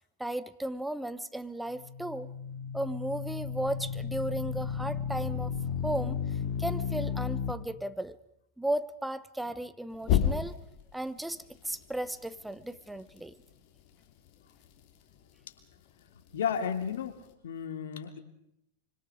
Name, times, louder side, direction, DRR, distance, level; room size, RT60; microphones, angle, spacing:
voice 1, 0.2-2.3 2.7-5.6 5.8-6.2 6.6-8.2 8.6-10.6 10.9-13.4, right 1 dB, 5° right, 14 dB, 1.2 m, -35 dB
sound 1, 1.7-7.5 10.0-10.8, left 8 dB, 50° left, 3.3 m, -32 dB
voice 2, 16.3-18.2, left 7 dB, 75° left, 7 dB, 2.9 m, -33 dB
25.5 x 25.0 x 5.0 m, 0.78 s
hypercardioid pair, 105°, 0 cm